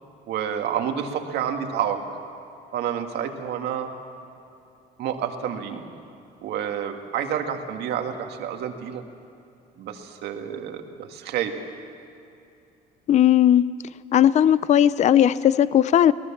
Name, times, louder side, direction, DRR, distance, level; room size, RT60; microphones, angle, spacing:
voice 1, 0.3-2.0 2.7-3.9 5.0-5.9 6.4-9.0 9.8-11.6, right 9 dB, 75° right, 5 dB, 1.9 m, -29 dB
voice 2, 13.1-13.7 14.1-16.1, left 10 dB, 45° left, 17 dB, 0.5 m, -17 dB
23.5 x 18.5 x 7.3 m, 2.6 s
cardioid pair, 110°, 17 cm